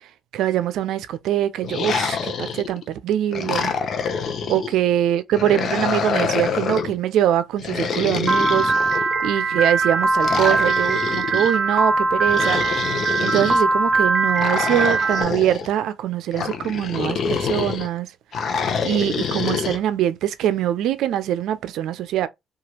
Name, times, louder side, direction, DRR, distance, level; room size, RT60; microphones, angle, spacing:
voice 1, 0.3-3.7 4.5-9.0 9.2-12.6 13.2-18.1 18.8-22.3, right 11 dB, 85° right, 0.4 m, -23 dB
sound 1, 1.6-2.8 3.3-4.7 5.3-7.0 7.6-9.3 10.2-11.5 12.2-13.6 14.4-15.7 16.3-17.9 18.3-19.8, left 6 dB, 60° left, 0.6 m, -26 dB
Piano, 8.3-15.2, right 3 dB, 40° right, 0.7 m, -21 dB
2.9 x 2.4 x 2.8 m
cardioid pair, 90°, 0 cm